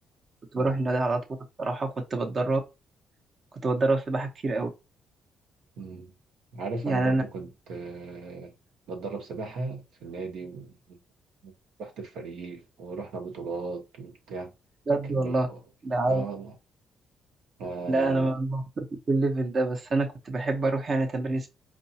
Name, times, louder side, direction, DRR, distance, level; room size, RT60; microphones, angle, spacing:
voice 1, 0.5-1.2 1.6-2.6 3.6-4.7 6.8-7.2 14.9-15.5 15.8-16.2 17.9-18.6 19.1-21.5, right 2 dB, 45° right, 0.8 m, -26 dB
voice 2, 5.8-6.1 6.5-8.5 8.9-11.0 11.4-11.5 11.8-14.5 15.1-15.6 16.1-16.5 17.6-18.3, right 4 dB, 80° right, 1.0 m, -37 dB
4.7 x 2.6 x 2.8 m
cardioid pair, 90°, 0 cm